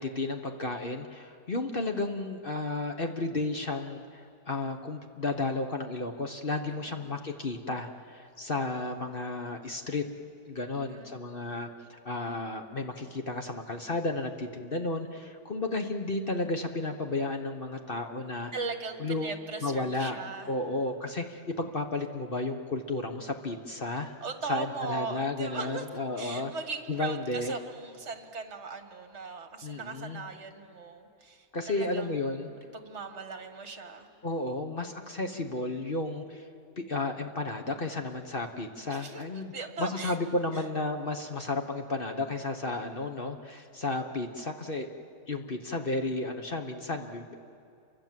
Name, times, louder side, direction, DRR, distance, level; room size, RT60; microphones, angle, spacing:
voice 1, 0.0-10.0 10.5-18.5 19.0-19.3 19.6-20.2 20.5-24.1 24.5-26.5 26.9-27.6 29.6-30.3 31.5-32.5 34.2-36.5 36.8-39.5 39.8-44.9 45.3-47.3, left 2 dB, 35° left, 5 dB, 1.2 m, -33 dB
voice 2, 6.6-7.1 10.7-11.2 18.5-20.5 24.2-25.9 26.2-34.1 38.9-40.2 40.5-40.7 43.3-43.4, right 4 dB, 40° right, 6 dB, 2.0 m, -39 dB
28.5 x 24.5 x 7.6 m, 2.5 s
omnidirectional pair, 1.8 m